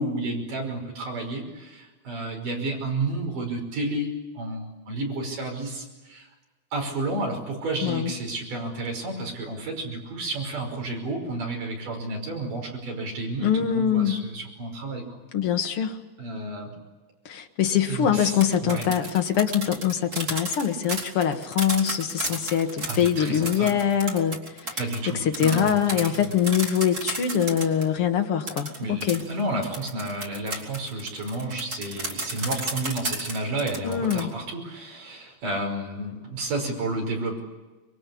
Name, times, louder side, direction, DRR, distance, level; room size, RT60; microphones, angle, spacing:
voice 1, 0.0-6.3 6.7-15.0 16.2-16.8 17.9-18.9 22.9-23.7 24.8-26.3 28.8-37.4, right 2 dB, 55° right, 1 dB, 7.0 m, -31 dB
voice 2, 13.4-14.2 15.3-16.0 17.2-24.8 25.2-29.2 33.8-34.3, left 9 dB, 55° left, 4 dB, 1.7 m, -24 dB
sound 1, 18.2-27.9 28.5-34.2, right 2 dB, 20° right, 2.7 m, -33 dB
26.0 x 23.0 x 8.5 m, 1.2 s
omnidirectional pair, 4.4 m